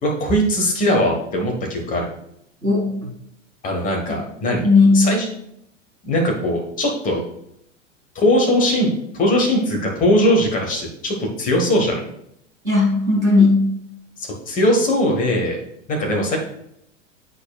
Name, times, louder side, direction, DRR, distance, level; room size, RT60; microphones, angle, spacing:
voice 1, 0.0-2.1 3.6-4.7 4.9-5.2 6.0-7.2 8.1-12.0 14.2-15.6 15.9-16.4, left 1 dB, 20° left, 0 dB, 1.4 m, -20 dB
voice 2, 2.6-2.9 4.6-5.1 12.6-13.7, left 3 dB, 85° right, -3 dB, 2.3 m, -15 dB
9.7 x 4.3 x 2.4 m, 0.74 s
figure-of-eight pair, 95°, 39 cm